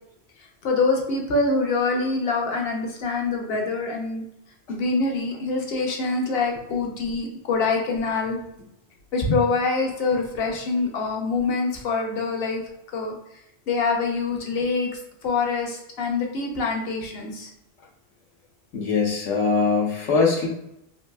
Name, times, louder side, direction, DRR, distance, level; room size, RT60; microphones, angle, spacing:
voice 1, 0.6-4.2 4.7-8.4 9.1-12.6 12.9-13.1 13.7-14.9 15.2-17.5, left 3 dB, 60° left, 1 dB, 0.9 m, -25 dB
voice 2, 18.7-20.5, left 4 dB, 80° left, -1 dB, 1.1 m, -22 dB
4.0 x 2.6 x 2.2 m, 0.81 s
omnidirectional pair, 1.2 m